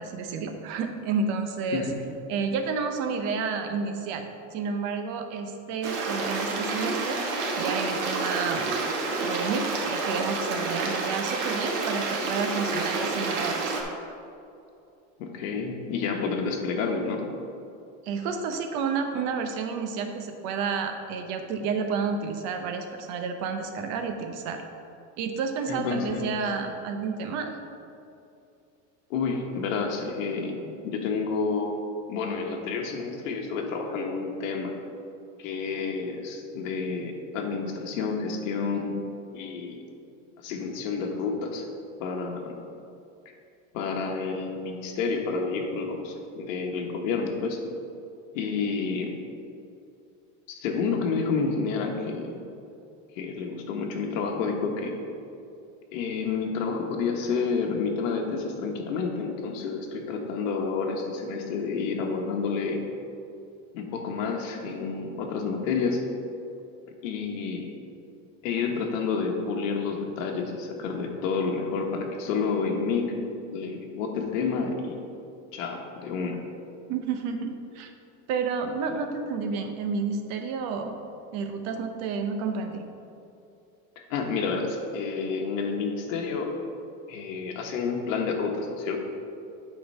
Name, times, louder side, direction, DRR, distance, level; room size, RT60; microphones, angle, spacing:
voice 1, 0.0-1.9 2.3-8.7 9.2-13.8 18.0-24.7 25.2-27.5 76.9-77.9 78.3-80.9 81.3-82.8, right 5 dB, 45° right, 6 dB, 0.7 m, -30 dB
Stream, 5.8-13.8, right 3 dB, 65° right, 1.2 m, -29 dB
voice 2, 15.2-17.2 25.7-26.4 29.1-34.7 35.4-39.0 39.3-39.8 40.4-41.6 42.0-42.5 43.2-43.3 43.7-47.6 48.3-49.1 50.5-52.4 53.1-54.9 55.9-62.8 63.7-66.0 67.0-67.7 68.4-73.1 73.5-75.0 75.5-76.4 84.1-86.5 87.1-89.0, left 4 dB, 85° left, 1 dB, 1.2 m, -29 dB
8.6 x 3.9 x 5.4 m, 2.6 s
cardioid pair, 165°, 38 cm